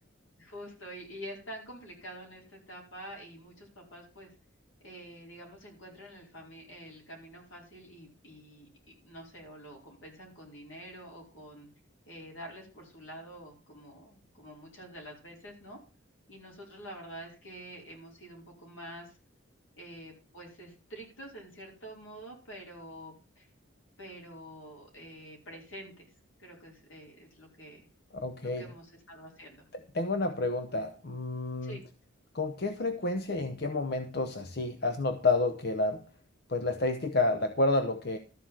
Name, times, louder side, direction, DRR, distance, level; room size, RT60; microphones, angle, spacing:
voice 1, 0.4-4.3 4.8-11.7 12.1-15.8 16.3-19.2 19.8-23.5 24.0-26.1 26.4-27.9 28.6-29.7 31.6-31.8, equal, 80° left, -1 dB, 4.8 m, -47 dB
voice 2, 28.1-28.7 29.7-31.8 32.3-36.0 36.5-38.2, left 2 dB, 50° left, 7 dB, 0.8 m, -30 dB
13.5 x 4.9 x 7.4 m, 0.36 s
head